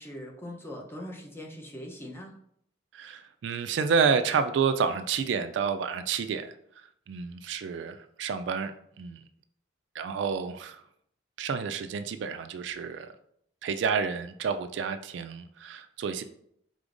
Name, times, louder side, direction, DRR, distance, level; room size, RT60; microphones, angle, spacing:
voice 1, 0.0-2.3, left 1 dB, 15° left, 0 dB, 0.7 m, -41 dB
voice 2, 2.9-8.7 9.0-9.2 9.9-10.8 11.4-13.1 13.6-16.2, right 6 dB, 70° right, 10 dB, 0.3 m, -29 dB
5.0 x 3.8 x 2.5 m, 0.70 s
head